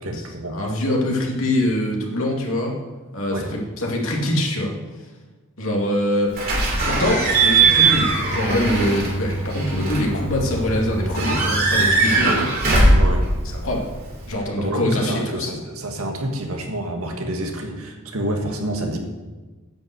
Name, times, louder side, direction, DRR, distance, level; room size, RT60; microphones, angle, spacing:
voice 1, 0.0-0.6 3.3-3.5 12.2-12.4 12.9-13.3 14.6-19.0, right 1 dB, 75° right, 3 dB, 1.8 m, -28 dB
voice 2, 0.5-2.8 3.1-3.5 3.8-4.7 5.6-12.4 13.5-13.9 14.3-15.5, left 1 dB, 65° left, -1 dB, 2.4 m, -24 dB
Slam / Squeak / Alarm, 6.4-14.3, right 3 dB, 45° right, 3.0 m, -20 dB
10.0 x 5.6 x 8.1 m, 1.3 s
head